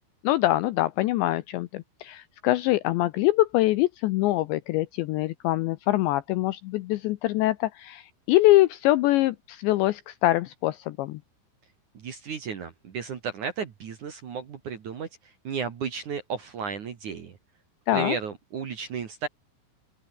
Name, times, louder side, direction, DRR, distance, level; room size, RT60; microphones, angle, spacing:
voice 1, 0.2-11.2 17.9-18.2, left 17 dB, 80° left, 2.7 m, -24 dB
voice 2, 11.9-17.4 17.9-19.3, right 6 dB, 50° right, 2.5 m, -34 dB
open air
omnidirectional pair, 5.9 m